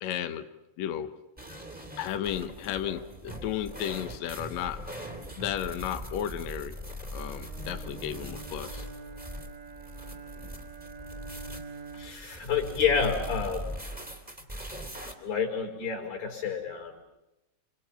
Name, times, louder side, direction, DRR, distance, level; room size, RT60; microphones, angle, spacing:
voice 1, 0.0-0.5 0.8-1.2 2.0-4.8 5.4-6.7 7.1-8.9, left 10 dB, 80° left, 8 dB, 1.5 m, -33 dB
sound 1, 1.4-15.1, equal, 5° right, 1.8 m, -41 dB
Bowed string instrument, 7.1-12.4, right 4 dB, 90° right, 1.5 m, -45 dB
voice 2, 11.9-13.7 15.2-17.0, left 6 dB, 55° left, 3 dB, 6.4 m, -29 dB
28.0 x 27.0 x 5.8 m, 0.91 s
omnidirectional pair, 4.8 m